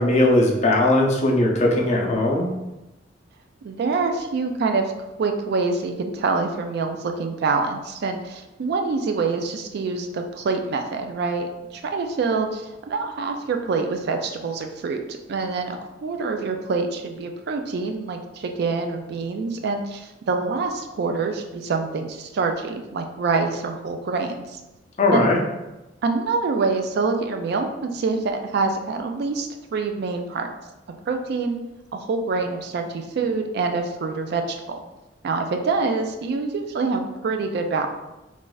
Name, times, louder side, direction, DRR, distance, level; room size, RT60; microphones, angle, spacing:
voice 1, 0.0-2.5 25.0-25.4, left 1 dB, 35° left, -1 dB, 0.5 m, -19 dB
voice 2, 3.6-4.9 5.2-24.6 25.1-25.3 26.0-30.5 31.1-31.6 31.9-34.8 35.2-37.9, right 4 dB, 60° right, 5 dB, 0.3 m, -26 dB
2.5 x 2.3 x 3.9 m, 1.0 s
head